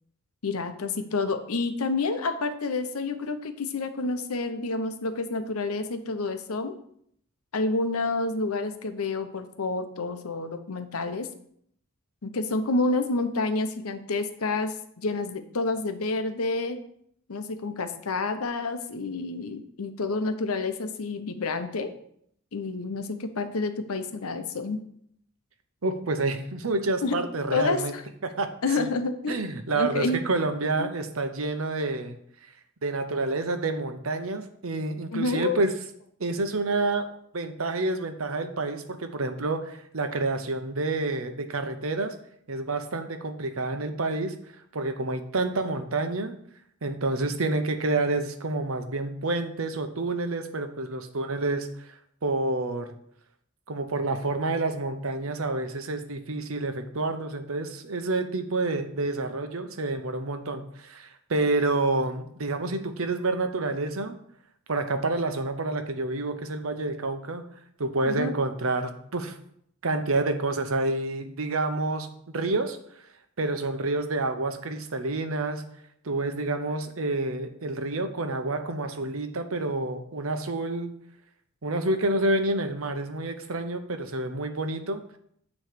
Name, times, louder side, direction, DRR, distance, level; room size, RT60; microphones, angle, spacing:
voice 1, 0.4-6.7 7.5-11.3 12.2-16.8 17.3-21.9 22.5-24.8 27.0-27.2 27.5-28.0 28.6-29.4 29.7-30.3 30.8-30.9 35.1-35.6 68.0-68.3, left 3 dB, 80° left, 9 dB, 0.8 m, -29 dB
voice 2, 25.8-27.9 28.2-28.5 28.8-28.9 29.3-32.2 32.8-35.7 36.2-37.1 37.3-42.2 42.5-44.3 44.7-46.3 46.8-51.9 52.2-52.9 53.7-64.2 64.7-67.4 67.8-69.4 69.8-72.1 72.3-72.8 73.4-75.6 76.0-80.9 81.6-85.0, right 2 dB, 70° right, 8 dB, 0.9 m, -28 dB
9.3 x 3.2 x 6.7 m, 0.68 s
head